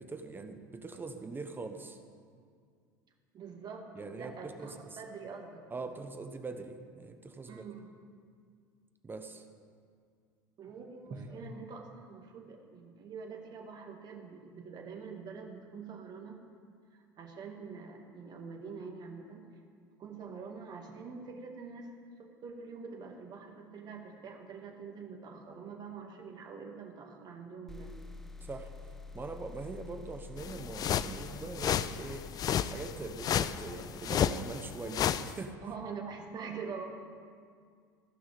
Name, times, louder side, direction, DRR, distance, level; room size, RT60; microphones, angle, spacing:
voice 1, 0.0-2.0 3.9-5.0 5.7-7.6 9.0-9.5 11.1-11.4 28.4-28.7 29.1-35.6, right 3 dB, 20° right, 7 dB, 1.0 m, -42 dB
voice 2, 3.3-5.6 7.4-7.9 10.6-16.4 16.9-19.5 20.0-21.9 22.2-27.9 35.6-36.8, right 5 dB, 40° right, 2 dB, 2.0 m, -45 dB
sound 1, 27.7-35.2, left 3 dB, 5° left, 0.9 m, -49 dB
sound 2, 30.4-35.3, left 9 dB, 35° left, 0.5 m, -32 dB
15.5 x 6.2 x 8.4 m, 2.1 s
hypercardioid pair, 70°, 11 cm